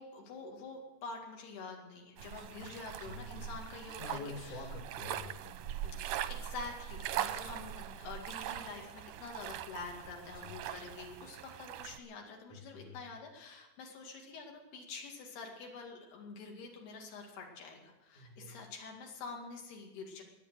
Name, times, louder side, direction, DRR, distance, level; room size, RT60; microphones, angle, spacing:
voice 1, 0.0-4.6 6.3-20.2, left 4 dB, 85° left, 0 dB, 4.3 m, -47 dB
sound 1, 2.2-12.0, right 11 dB, 80° right, 1.9 m, -41 dB
voice 2, 2.4-2.8 3.0-3.6 4.0-5.9 7.2-7.7 10.3-10.6 12.5-13.0 18.1-18.6, left 3 dB, 55° left, 1 dB, 3.3 m, -48 dB
21.5 x 8.8 x 6.5 m, 1.1 s
omnidirectional pair, 4.5 m